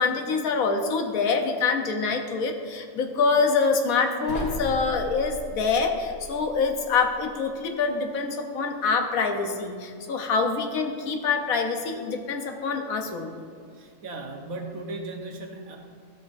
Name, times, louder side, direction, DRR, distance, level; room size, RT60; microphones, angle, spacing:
voice 1, 0.0-13.4, left 4 dB, 80° left, 5 dB, 1.3 m, -25 dB
sound 1, 4.3-7.3, left 1 dB, 65° left, 1.5 m, -37 dB
voice 2, 13.7-15.8, right 2 dB, 80° right, 2 dB, 1.4 m, -36 dB
13.0 x 6.4 x 2.6 m, 2.1 s
omnidirectional pair, 1.5 m